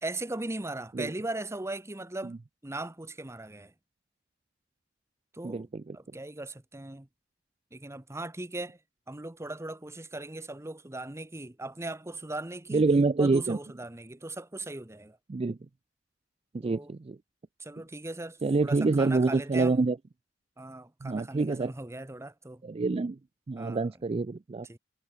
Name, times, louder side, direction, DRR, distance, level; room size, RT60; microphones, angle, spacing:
voice 1, 0.0-2.4 2.6-3.7 5.3-5.7 5.9-7.1 7.7-8.8 9.1-12.8 13.2-15.2 16.6-16.9 17.6-19.8 20.6-22.6 23.6-23.8 24.6-24.8, right 2 dB, 15° right, 1.0 m, -38 dB
voice 2, 5.4-6.0 12.7-13.6 15.3-15.6 16.5-17.2 18.4-20.0 21.0-21.7 22.6-23.2 23.5-24.7, right 3 dB, 30° right, 0.4 m, -26 dB
head